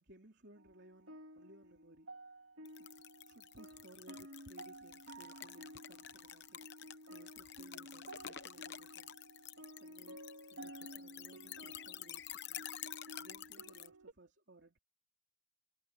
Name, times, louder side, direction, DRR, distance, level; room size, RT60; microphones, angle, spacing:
voice 1, 0.0-2.1 2.8-2.9 3.2-6.6 7.1-9.2 9.8-10.2 10.5-12.7 13.2-14.8, right 1 dB, 50° right, 3.4 m, -61 dB
sound 1, 0.6-14.1, right 1 dB, 75° right, 3.2 m, -53 dB
sound 2, 2.6-13.9, left 11 dB, 55° left, 0.9 m, -50 dB
head